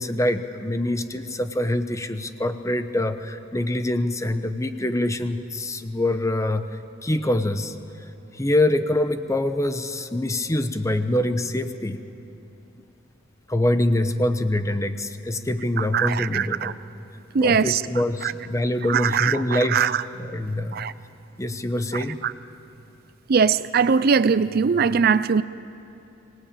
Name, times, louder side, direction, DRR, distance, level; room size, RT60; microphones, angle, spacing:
voice 1, 0.0-7.7 8.3-12.0 13.5-16.8 17.4-19.8 20.2-20.8 21.4-22.2, left 1 dB, 15° left, 10 dB, 0.9 m, -25 dB
voice 2, 15.8-16.7 17.3-17.8 18.2-18.3 18.9-20.0 20.7-20.9 21.9-22.3 23.3-25.4, right 6 dB, 50° right, 15 dB, 0.5 m, -21 dB
24.0 x 19.0 x 8.9 m, 2.8 s
head